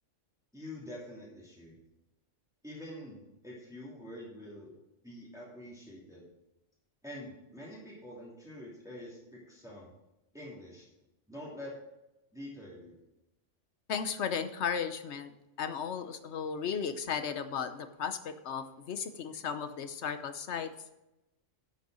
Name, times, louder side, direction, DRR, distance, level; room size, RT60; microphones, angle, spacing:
voice 1, 0.5-1.8 2.6-4.8 5.0-6.2 7.0-9.9 10.3-10.9 11.3-11.7 12.3-13.0, left 1 dB, 5° right, -6 dB, 2.8 m, -46 dB
voice 2, 13.9-15.3 15.6-20.7, left 6 dB, 65° left, 9 dB, 1.2 m, -35 dB
11.0 x 6.7 x 6.3 m, 0.94 s
omnidirectional pair, 1.3 m